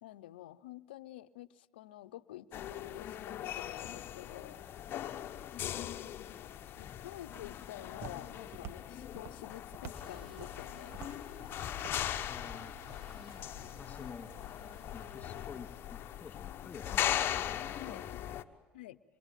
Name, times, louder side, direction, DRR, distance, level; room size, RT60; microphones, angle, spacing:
voice 1, 0.0-4.6 6.8-11.0 17.8-18.3 18.7-19.0, left 14 dB, 85° left, 14 dB, 0.8 m, -49 dB
sound 1, 2.5-18.4, left 11 dB, 45° left, 1.1 m, -40 dB
voice 2, 4.7-5.3 6.6-7.0 12.2-12.8 13.0-13.5 13.8-14.4 14.9-18.7, left 5 dB, 25° left, 8 dB, 2.9 m, -51 dB
Walk footsteps, 6.6-12.8, right 7 dB, 50° right, 1.8 m, -52 dB
sound 2, 9.9-15.5, right 5 dB, 75° right, 4.7 m, -58 dB
26.0 x 22.5 x 9.1 m, 1.2 s
supercardioid pair, 95°, 5 cm